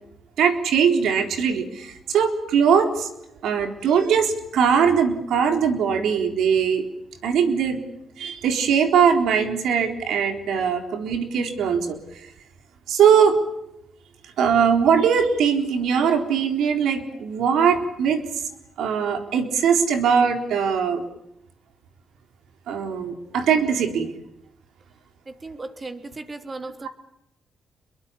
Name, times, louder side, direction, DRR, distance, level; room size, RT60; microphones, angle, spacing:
voice 1, 0.4-3.1 3.4-6.9 7.2-7.8 8.2-12.0 12.9-13.4 14.4-18.2 18.8-21.0 22.7-24.1 26.8-26.9, right 7 dB, 85° right, 6 dB, 4.0 m, -21 dB
voice 2, 25.3-26.9, right 3 dB, 30° right, 8 dB, 3.4 m, -36 dB
27.0 x 22.5 x 8.6 m, 0.81 s
cardioid pair, 90°, 0 cm